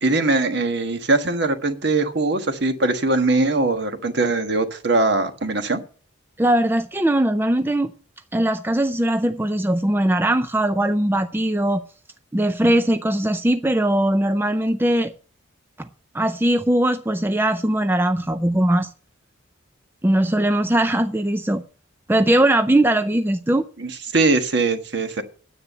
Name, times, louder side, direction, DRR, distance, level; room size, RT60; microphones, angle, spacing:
voice 1, 0.0-5.8 23.8-25.2, right 2 dB, 55° right, 1.5 m, -21 dB
voice 2, 6.4-7.9 8.3-11.8 12.3-15.1 15.8-15.9 16.1-18.9 20.0-21.6 22.1-23.6, right 1 dB, 10° right, 0.4 m, -20 dB
10.0 x 8.3 x 6.7 m
head